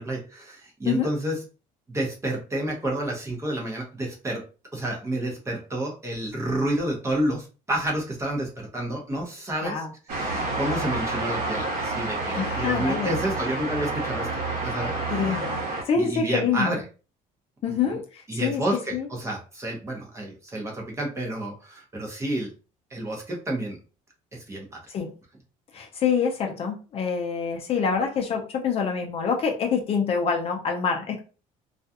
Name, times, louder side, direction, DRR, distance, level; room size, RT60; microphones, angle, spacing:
voice 1, 0.0-1.4 1.9-4.4 4.7-9.8 10.1-14.3 14.6-15.4 16.0-16.8 17.9-18.0 18.3-22.5 22.9-23.8 24.3-24.8, right 1 dB, 20° right, -1 dB, 0.7 m, -30 dB
sound 1, 10.1-15.8, right 2 dB, 60° right, 1.0 m, -29 dB
voice 2, 12.3-13.2 15.1-16.8 17.6-18.6 18.9-19.1 24.9-25.1 25.7-31.2, left 6 dB, 40° left, 2 dB, 0.5 m, -26 dB
2.4 x 2.3 x 2.6 m, 0.34 s
cardioid pair, 135°, 15 cm